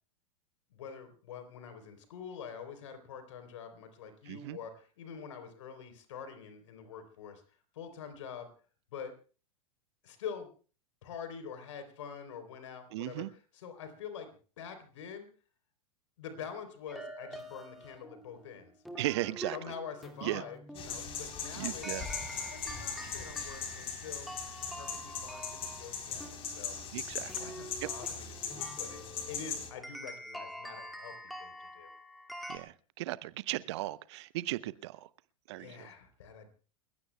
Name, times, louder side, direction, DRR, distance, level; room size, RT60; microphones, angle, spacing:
voice 1, 0.7-7.4 7.7-8.5 8.9-9.1 10.0-10.5 11.0-13.2 13.5-15.3 16.2-18.7 19.2-21.9 22.5-24.3 24.6-26.8 27.4-29.0 29.3-31.1 31.4-31.9 35.6-36.5, left 7 dB, 60° left, 8 dB, 3.6 m, -45 dB
voice 2, 4.3-4.6 12.9-13.3 19.0-19.6 20.2-20.4 21.5-22.1 26.9-27.5 27.8-27.9 32.5-35.1 35.5-35.9, right 17 dB, 50° right, 18 dB, 0.7 m, -36 dB
sound 1, 16.9-32.6, equal, ahead, 2.4 m, -47 dB
sound 2, 20.8-29.7, left 6 dB, 30° left, 3.7 m, -40 dB
29.5 x 16.0 x 2.3 m, 0.38 s
figure-of-eight pair, 90°, 18 cm